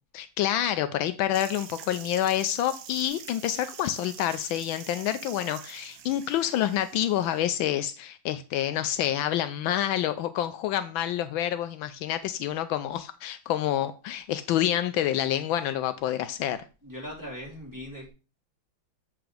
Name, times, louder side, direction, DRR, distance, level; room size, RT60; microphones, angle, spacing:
voice 1, 0.1-16.6, left 11 dB, 80° left, 11 dB, 1.3 m, -28 dB
sound 1, 1.3-7.5, right 9 dB, 70° right, 1.3 m, -45 dB
voice 2, 16.8-18.1, equal, 10° right, -5 dB, 3.9 m, -39 dB
7.9 x 4.6 x 4.9 m, 0.33 s
omnidirectional pair, 2.2 m